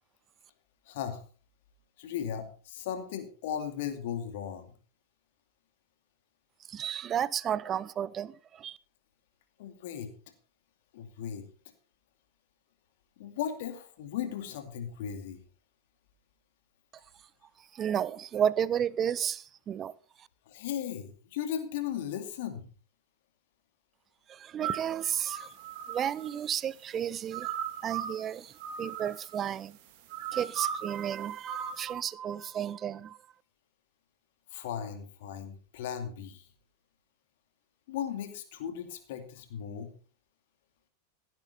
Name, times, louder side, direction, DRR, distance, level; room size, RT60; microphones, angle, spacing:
voice 1, 0.9-1.2 2.0-4.7 9.6-10.1 10.9-11.5 13.2-15.4 20.5-22.7 34.5-36.5 37.9-39.9, left 9 dB, 50° left, 2.5 m, -36 dB
voice 2, 6.7-8.8 17.7-19.9 20.2-20.3 24.3-25.5 25.9-27.5 27.8-28.5 28.8-29.8 30.3-33.2, right 9 dB, 25° right, 0.7 m, -32 dB
sound 1, 24.6-26.4 27.3-28.3 28.6-29.5 30.1-31.1 31.5-31.9, right 9 dB, 45° right, 2.3 m, -37 dB
15.5 x 10.5 x 4.2 m
figure-of-eight pair, 90°, 0 cm